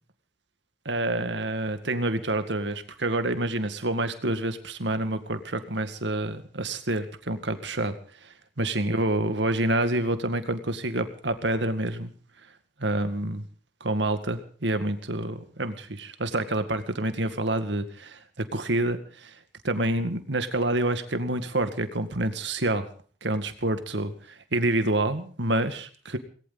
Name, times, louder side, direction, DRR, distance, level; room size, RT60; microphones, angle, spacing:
voice 1, 0.9-7.9 8.2-12.1 12.8-13.4 13.8-19.4 19.6-22.9 23.2-26.2, right 1 dB, 75° right, 9 dB, 2.1 m, -28 dB
19.5 x 18.0 x 4.1 m, 0.43 s
head